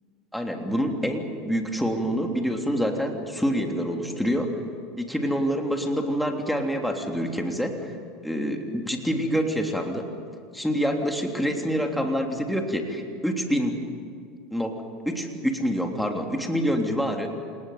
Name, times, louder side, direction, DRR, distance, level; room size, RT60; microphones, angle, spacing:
voice 1, 0.3-4.5 5.0-7.9 8.2-10.1 10.5-13.8 14.5-14.7 15.0-17.3, equal, ahead, 2 dB, 3.3 m, -26 dB
28.0 x 19.0 x 9.5 m, 2.2 s
supercardioid pair, 110°, 0 cm